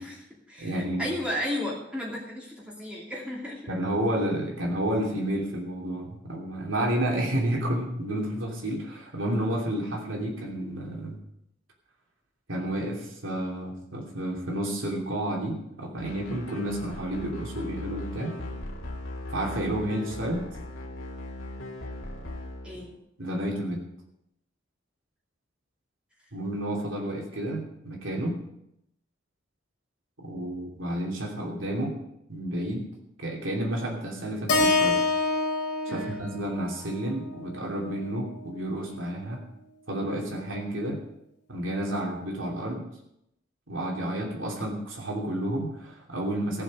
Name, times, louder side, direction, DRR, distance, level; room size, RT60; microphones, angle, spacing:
voice 1, 0.0-3.7 22.6-22.9 35.9-36.2, left 1 dB, 5° right, -4 dB, 2.4 m, -34 dB
voice 2, 0.6-1.1 3.7-11.2 12.5-18.3 19.3-20.5 23.2-23.8 26.3-28.4 30.2-32.0 32.3-32.8 33.2-35.1 35.9-39.4 39.9-41.0 41.5-42.9 43.7-46.6, right 1 dB, 75° right, -1 dB, 2.9 m, -30 dB
sound 1, 16.0-22.9, left 1 dB, 90° left, 2.2 m, -39 dB
Keyboard (musical), 34.5-38.7, left 3 dB, 60° left, 2.6 m, -28 dB
16.0 x 7.0 x 6.5 m, 0.80 s
head